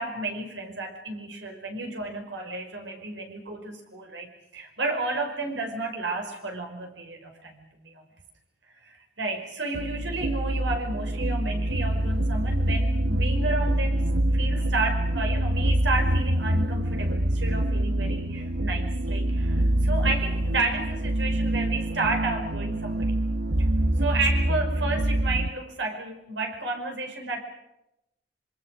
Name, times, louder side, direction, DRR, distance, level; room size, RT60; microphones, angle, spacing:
voice 1, 0.0-8.1 8.8-23.2 23.6-23.7 24.0-27.4, right 3 dB, 85° right, 4 dB, 5.6 m, -32 dB
sound 1, 9.7-25.5, right 1 dB, 70° right, 1.2 m, -25 dB
26.5 x 24.0 x 6.6 m, 0.87 s
head